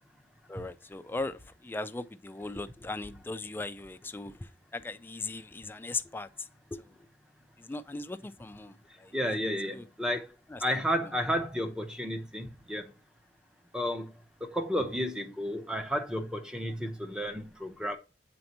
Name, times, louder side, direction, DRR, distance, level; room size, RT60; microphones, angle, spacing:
voice 1, 0.5-6.9 7.6-9.1 9.7-9.9 10.5-10.8, left 2 dB, 10° left, 0.3 m, -39 dB
voice 2, 9.1-10.3 10.6-12.9 13.7-14.1 14.4-18.0, equal, 5° right, 0.7 m, -32 dB
7.7 x 4.3 x 2.9 m
head